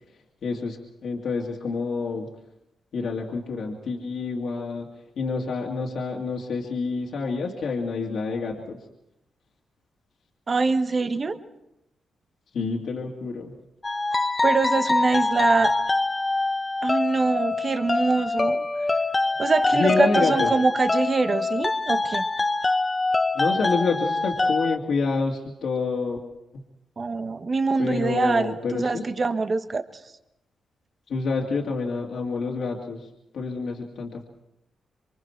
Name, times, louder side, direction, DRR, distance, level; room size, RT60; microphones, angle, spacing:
voice 1, 0.4-2.3 2.9-4.9 5.2-8.8 12.5-13.5 19.7-20.5 23.3-26.2 27.8-29.1 31.1-33.1 33.3-34.2, left 4 dB, 75° left, -1 dB, 2.4 m, -28 dB
voice 2, 10.5-11.4 14.4-15.8 16.8-18.6 19.4-22.3 27.0-29.8, right 4 dB, 40° right, 9 dB, 1.3 m, -24 dB
sound 1, 13.8-24.8, left 2 dB, 25° left, 0.9 m, -24 dB
26.5 x 23.5 x 4.6 m, 0.87 s
cardioid pair, 70°, 0 cm